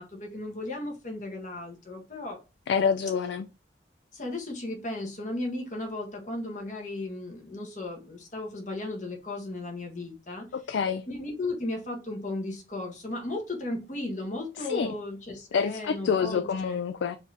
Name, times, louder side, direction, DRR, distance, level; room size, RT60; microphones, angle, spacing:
voice 1, 0.0-2.4 4.1-10.5 11.1-16.4, left 2 dB, 40° left, 1.3 m, -35 dB
voice 2, 2.7-3.4 10.5-11.0 14.6-14.9 15.5-17.2, left 6 dB, 70° left, 0.3 m, -27 dB
4.9 x 2.8 x 3.3 m
head